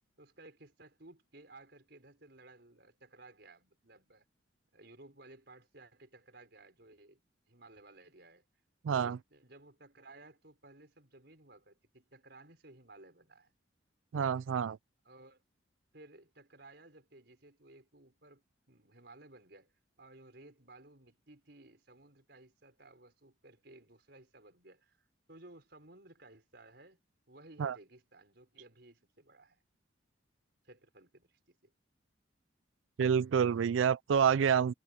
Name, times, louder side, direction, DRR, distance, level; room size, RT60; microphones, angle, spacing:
voice 1, 0.2-4.3 4.7-7.2 7.5-8.4 8.9-13.5 15.0-15.4 15.9-19.7 20.0-25.0 25.3-27.0 27.3-29.6 30.6-31.7, right 2 dB, 55° right, 5.9 m, -57 dB
voice 2, 8.8-9.2 14.1-14.8 27.6-27.8 33.0-34.7, right 7 dB, 85° right, 0.4 m, -28 dB
head